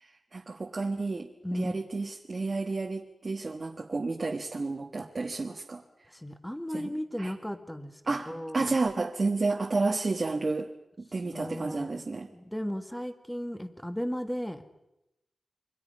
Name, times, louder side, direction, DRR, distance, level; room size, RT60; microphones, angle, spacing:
voice 1, 0.3-5.8 6.7-6.9 7.2-7.3 8.1-10.7 11.1-12.3, right 3 dB, 40° right, 2 dB, 1.4 m, -31 dB
voice 2, 1.4-1.7 6.1-8.8 11.3-12.0 12.3-14.6, equal, 5° left, 8 dB, 1.7 m, -35 dB
28.0 x 24.0 x 5.4 m, 0.91 s
wide cardioid pair, 135°, 0 cm